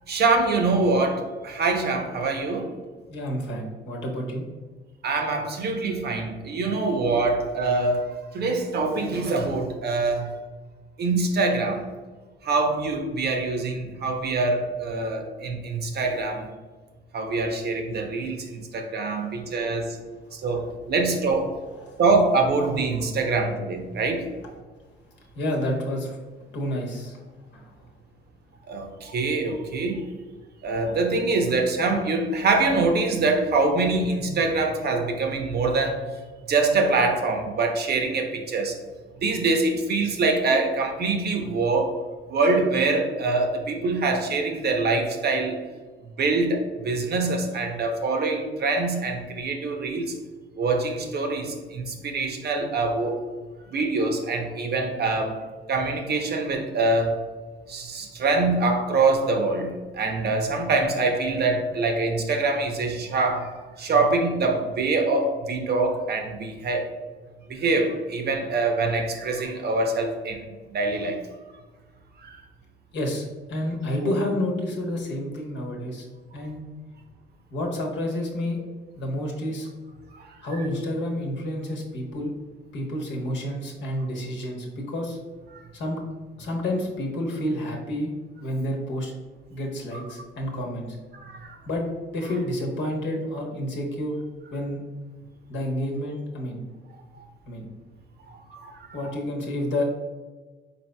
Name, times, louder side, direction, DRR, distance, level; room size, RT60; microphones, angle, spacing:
voice 1, 0.1-2.7 5.0-10.4 11.0-11.9 12.4-16.5 17.1-20.0 20.3-21.5 22.0-24.3 28.7-30.1 30.6-36.0 36.5-38.8 39.2-42.0 42.3-45.6 46.2-50.1 50.6-53.2 53.7-55.4 55.7-57.1 57.7-66.8 67.5-70.4 70.7-71.2 72.2-72.4 74.0-74.2 85.5-85.6 89.9-90.0 91.1-91.6 97.2-97.3 98.3-99.0, right 3 dB, 55° right, 4 dB, 0.7 m, -24 dB
voice 2, 3.1-4.4 21.8-22.0 25.3-26.2 26.5-27.2 27.5-27.6 72.9-76.1 76.3-76.6 77.5-78.6 79.0-79.7 80.4-82.3 82.7-85.2 85.7-86.0 86.4-88.1 88.4-89.1 89.5-90.9 91.7-91.9 92.1-94.2 94.5-94.8 95.5-96.6 97.5-97.7 98.9-99.9, left 1 dB, 65° left, -1 dB, 1.1 m, -29 dB
4.2 x 4.0 x 2.2 m, 1.4 s
cardioid pair, 90°, 20 cm